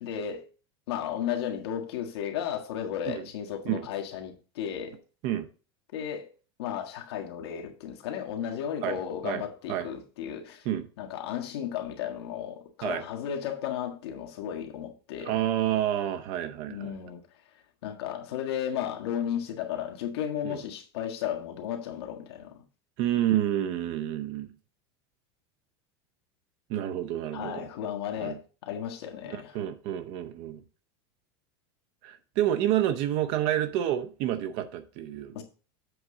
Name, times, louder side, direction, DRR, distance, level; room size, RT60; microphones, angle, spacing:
voice 1, 0.0-0.5 0.9-5.0 5.9-6.3 6.6-10.7 11.0-15.4 16.7-17.2 17.8-22.6 27.3-29.5 35.3-35.4, left 9 dB, 80° left, 1.6 m, -34 dB
voice 2, 15.2-16.9 20.4-20.6 23.0-24.5 26.7-27.7 28.2-28.4 29.3-30.6 32.0-35.4, right 12 dB, 40° right, 0.7 m, -29 dB
7.8 x 3.7 x 6.5 m
supercardioid pair, 175°, 13 cm